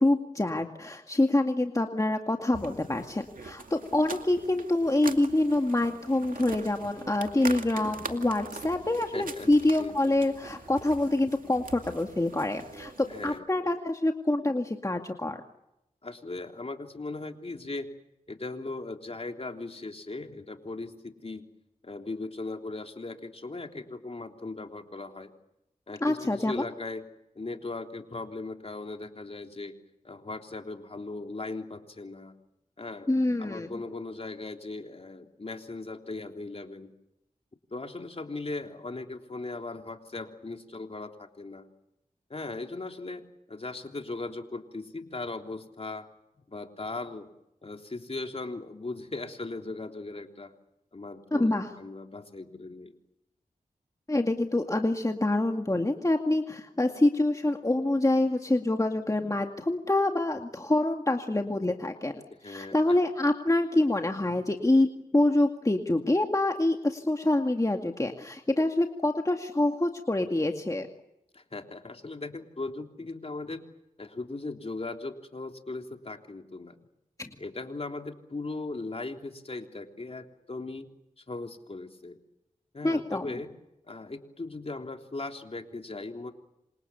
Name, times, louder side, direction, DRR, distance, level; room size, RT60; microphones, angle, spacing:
voice 1, 0.0-15.4 26.0-26.7 33.1-33.7 51.3-51.7 54.1-70.9 77.2-77.3 82.8-83.3, left 2 dB, 25° left, 4 dB, 2.2 m, -26 dB
sound 1, 2.5-13.4, right 4 dB, 75° right, 2.4 m, -43 dB
voice 2, 9.1-9.5 9.8-10.2 13.1-13.7 16.0-17.9 18.3-21.4 21.8-25.3 25.9-27.0 27.3-29.8 30.0-32.4 32.8-33.1 33.4-36.9 37.7-41.7 42.3-46.1 46.5-47.3 47.6-50.5 50.9-52.9 62.3-63.0 71.3-73.6 74.0-76.8 77.4-80.9 81.2-82.2 82.7-83.5 83.9-86.3, left 3 dB, 45° left, 4 dB, 3.4 m, -38 dB
27.5 x 27.0 x 7.1 m, 0.88 s
cardioid pair, 55°, 14 cm